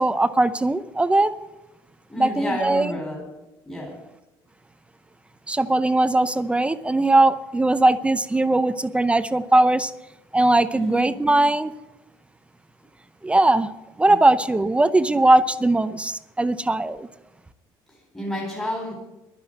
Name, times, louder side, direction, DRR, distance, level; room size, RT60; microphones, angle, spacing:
voice 1, 0.0-1.3 2.2-3.0 5.5-9.9 10.3-11.7 13.2-13.7 14.0-17.1, right 2 dB, 10° right, 0.6 m, -20 dB
voice 2, 2.1-3.3 3.7-4.0 10.7-11.1 16.4-16.5 17.9-18.9, left 1 dB, 10° left, 3.8 m, -30 dB
11.5 x 10.5 x 7.8 m
cardioid pair, 110°, 10 cm